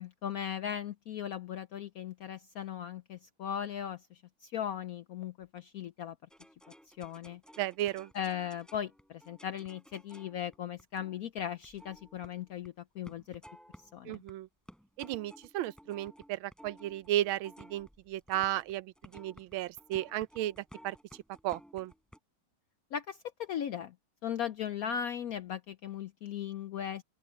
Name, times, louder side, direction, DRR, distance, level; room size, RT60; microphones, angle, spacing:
voice 1, 0.0-6.2 6.9-7.4 8.1-13.4 13.9-14.2 22.9-23.9 24.2-27.0, left 9 dB, 75° left, 0.8 m, -38 dB
sound 1, 6.3-12.7 13.0-14.3 14.7-22.2, equal, ahead, 7.1 m, -55 dB
voice 2, 7.6-8.1 14.0-14.5 15.0-20.6 20.8-21.0 21.4-21.9, right 14 dB, 90° right, 1.4 m, -34 dB
open air
omnidirectional pair, 2.2 m